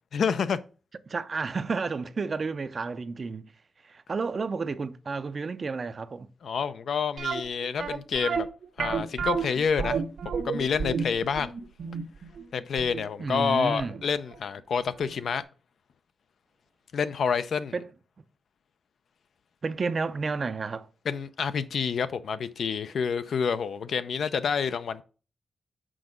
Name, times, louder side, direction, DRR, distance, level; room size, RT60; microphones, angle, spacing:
voice 1, 0.1-0.6 6.4-8.5 8.8-11.5 12.5-15.4 16.9-17.7 21.1-25.0, left 6 dB, 65° left, 0.5 m, -28 dB
voice 2, 1.1-3.5 3.8-6.3 13.2-14.0 17.7-17.9 19.6-20.9, right 4 dB, 35° right, 0.5 m, -31 dB
sound 1, 7.2-14.0 14.3-14.4 15.0-15.1 15.4-15.5, right 6 dB, 70° right, 1.0 m, -31 dB
6.2 x 4.7 x 5.0 m
wide cardioid pair, 150°, 0 cm